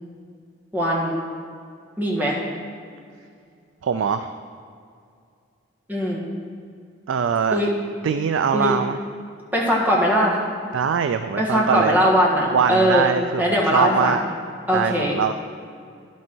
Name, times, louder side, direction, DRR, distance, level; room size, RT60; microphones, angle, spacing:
voice 1, 0.7-1.2 2.0-2.4 5.9-6.2 7.5-7.7 8.5-8.7 9.5-10.4 11.4-13.0 13.4-14.2 14.7-15.2, equal, 10° right, -4 dB, 1.4 m, -20 dB
voice 2, 3.8-4.3 7.1-7.6 8.0-9.0 10.7-12.0 12.5-14.2 14.7-15.3, right 7 dB, 75° right, 9 dB, 0.3 m, -22 dB
11.0 x 6.1 x 4.5 m, 2.3 s
head